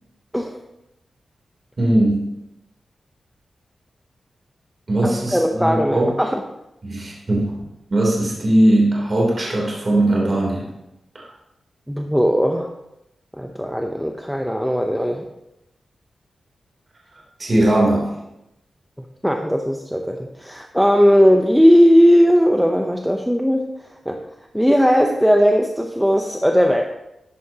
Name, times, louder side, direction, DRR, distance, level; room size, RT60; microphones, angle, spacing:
voice 1, 1.8-2.2 4.9-6.1 6.8-7.6 7.9-10.7 11.1-11.2 17.4-18.1, right 1 dB, 35° right, -3 dB, 3.2 m, -19 dB
voice 2, 5.0-6.4 11.9-12.7 13.4-15.2 19.0-23.6 24.1-24.2 24.5-26.8, equal, ahead, 3 dB, 0.7 m, -17 dB
12.5 x 10.5 x 2.9 m, 0.88 s
wide cardioid pair, 135°, 0 cm